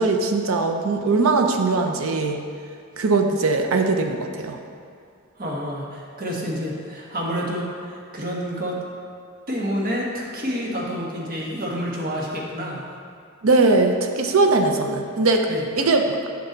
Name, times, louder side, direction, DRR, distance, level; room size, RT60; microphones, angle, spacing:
voice 1, 0.0-2.4 3.0-4.6 13.4-15.5 15.8-16.3, right 3 dB, 70° right, 4 dB, 0.6 m, -20 dB
voice 2, 5.4-8.7 9.5-12.8 15.5-15.6, equal, 45° right, -3 dB, 1.3 m, -28 dB
6.7 x 6.6 x 4.0 m, 2.3 s
head